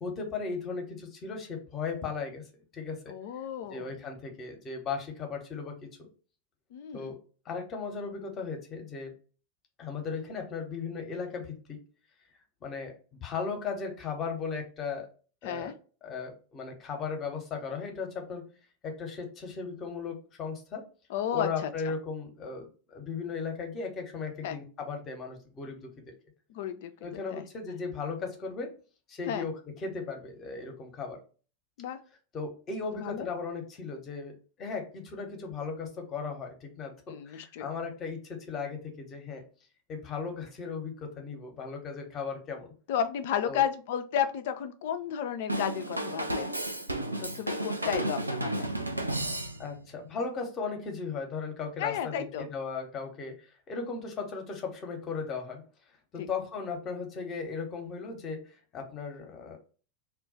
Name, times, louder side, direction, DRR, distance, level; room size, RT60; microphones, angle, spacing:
voice 1, 0.0-2.4 2.7-3.1 3.7-5.9 6.9-7.1 7.4-9.1 9.8-11.8 12.6-12.9 13.2-15.1 15.4-15.7 16.0-18.4 18.8-20.8 21.3-25.8 27.0-28.7 29.1-31.2 32.3-34.3 34.6-39.4 39.9-42.7 43.4-43.6 47.8-47.9 49.6-55.6 56.1-58.4 58.7-59.6, left 5 dB, 30° left, 3 dB, 0.8 m, -36 dB
voice 2, 3.1-3.9 6.7-7.1 15.4-15.7 21.1-21.7 24.4-24.6 26.5-26.9 27.3-27.8 29.3-29.5 31.8-32.0 32.9-33.3 37.1-37.7 42.9-46.5 47.2-48.7 51.8-52.5 56.2-56.3, left 9 dB, 50° left, 9 dB, 0.4 m, -33 dB
Drum kit / Drum, 45.5-49.9, right 1 dB, 85° right, 0.4 m, -32 dB
2.3 x 2.2 x 3.8 m, 0.38 s
figure-of-eight pair, 90°, 0 cm